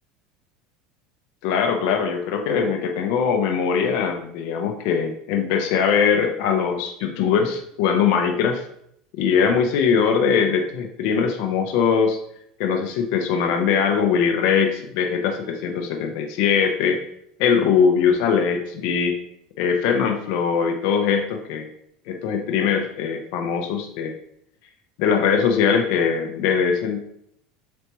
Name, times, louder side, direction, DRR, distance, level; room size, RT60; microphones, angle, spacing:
voice 1, 1.4-8.6 9.1-12.2 12.6-17.0 17.4-19.1 19.6-21.7 22.1-24.2 25.0-27.0, left 6 dB, 65° left, 4 dB, 0.5 m, -21 dB
4.1 x 3.3 x 2.9 m, 0.70 s
hypercardioid pair, 80°, 0 cm